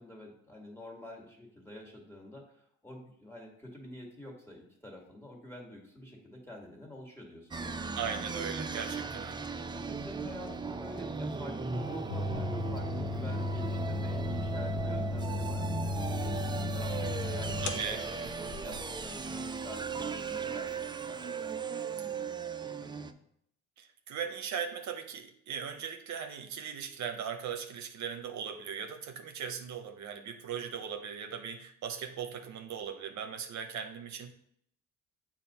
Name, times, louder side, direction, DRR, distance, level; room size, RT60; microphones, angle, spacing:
voice 1, 0.0-2.5 2.8-7.9 8.9-9.2 9.7-16.3 16.6-18.0 18.4-22.1 22.6-23.1, left 1 dB, 10° left, -1 dB, 1.8 m, -48 dB
sound 1, 7.5-23.1, right 4 dB, 15° right, 0.3 m, -37 dB
voice 2, 7.9-9.5 17.6-18.4 23.8-34.3, right 7 dB, 70° right, 6 dB, 0.7 m, -39 dB
sound 2, 12.1-19.1, left 2 dB, 80° left, 0.7 m, -35 dB
7.2 x 2.5 x 5.3 m, 0.70 s
cardioid pair, 90°, 30 cm